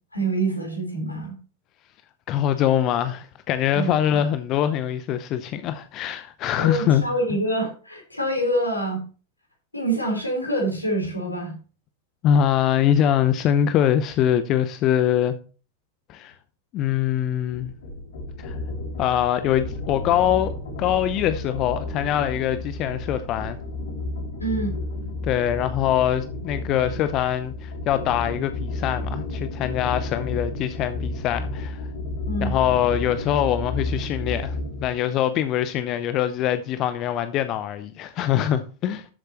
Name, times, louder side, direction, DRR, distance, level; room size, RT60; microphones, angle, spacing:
voice 1, 0.1-1.4 3.7-4.2 6.6-9.0 9.7-11.5 24.4-24.7 32.3-32.5, right 1 dB, 85° left, 4.2 m, -26 dB
voice 2, 2.3-7.0 12.2-15.4 16.1-16.3 16.7-17.7 18.4-18.6 19.0-23.6 25.2-31.9 32.4-39.1, left 10 dB, 35° left, 0.8 m, -23 dB
sound 1, 17.5-35.0, left 2 dB, 60° left, 3.3 m, -32 dB
12.5 x 8.1 x 3.0 m
figure-of-eight pair, 90°, 0 cm